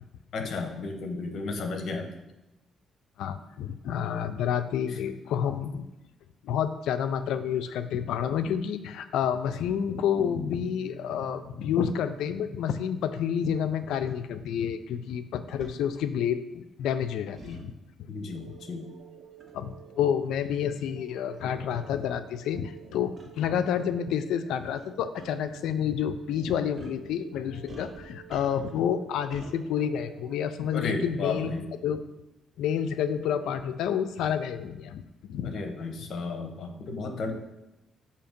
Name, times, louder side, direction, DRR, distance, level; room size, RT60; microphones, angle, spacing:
voice 1, 0.3-2.1 4.9-5.0 18.1-18.9 30.7-31.7 35.4-37.3, left 3 dB, 60° left, 5 dB, 0.9 m, -33 dB
voice 2, 3.2-5.9 6.4-17.7 18.4-18.5 19.5-31.5 31.8-32.0 32.6-35.6, left 8 dB, 85° left, 11 dB, 0.4 m, -29 dB
sound 1, 10.1-15.2, right 3 dB, 15° right, 1.0 m, -48 dB
sound 2, 14.0-14.2 15.6-15.8 17.4-17.6 19.4-19.6 20.4-20.5 21.3-21.4 21.7-21.8 23.2-23.3 24.6-24.8 25.2-25.3 26.8-27.0 27.7-28.8 29.3-29.5, right 2 dB, 35° right, 1.3 m, -45 dB
sound 3, 18.3-30.8, right 11 dB, 75° right, 0.7 m, -51 dB
6.9 x 2.8 x 5.1 m, 0.96 s
cardioid pair, 90°, 0 cm